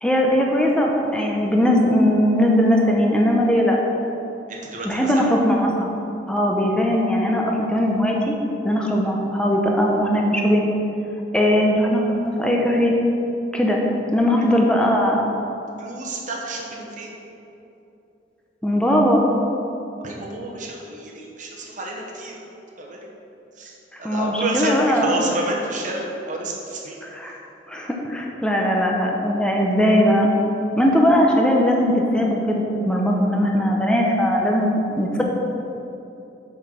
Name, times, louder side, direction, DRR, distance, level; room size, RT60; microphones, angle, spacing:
voice 1, 0.0-3.8 4.8-5.9 6.3-8.3 8.6-10.7 11.3-12.9 13.5-13.8 14.1-15.2 18.6-19.2 24.0-25.2 27.0-27.3 27.7-30.3 30.8-35.2, equal, 5° left, -1 dB, 0.7 m, -19 dB
voice 2, 4.5-5.3 14.4-14.5 15.8-17.1 20.0-22.3 22.8-23.0 23.6-27.0, right 1 dB, 45° right, -1 dB, 1.1 m, -30 dB
6.2 x 5.3 x 5.7 m, 2.9 s
head